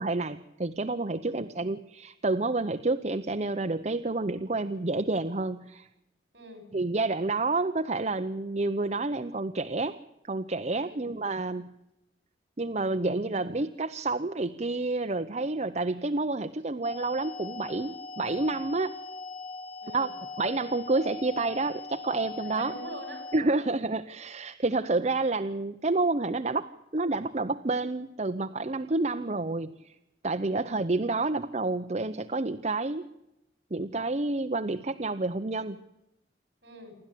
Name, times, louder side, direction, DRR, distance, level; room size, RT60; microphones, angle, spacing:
voice 1, 0.0-5.9 6.7-10.0 10.3-11.7 12.6-19.0 19.9-22.7 23.3-30.0 30.2-33.0 33.7-35.8, right 2 dB, 35° right, 8 dB, 0.7 m, -29 dB
voice 2, 1.2-1.6 6.3-6.7 10.7-11.1 19.8-20.1 22.4-23.7 30.4-30.8 36.6-36.9, equal, 60° right, 6 dB, 7.5 m, -45 dB
sound 1, 16.8-23.4, left 3 dB, 30° left, 1.3 m, -41 dB
28.5 x 12.0 x 8.4 m, 0.89 s
head